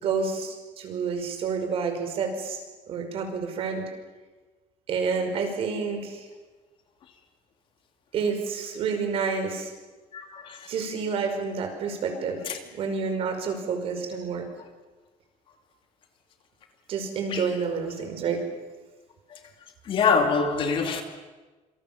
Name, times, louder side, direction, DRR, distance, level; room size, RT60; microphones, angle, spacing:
voice 1, 0.0-2.6 2.9-3.9 4.9-6.3 8.1-9.7 10.7-12.4 12.7-14.4 16.9-18.4, right 5 dB, 45° right, 5.5 m, -29 dB
voice 2, 10.1-10.6 17.3-17.4 19.9-21.0, left 5 dB, 40° left, 2.7 m, -24 dB
27.5 x 26.0 x 7.4 m
cardioid pair, 170°, 14 cm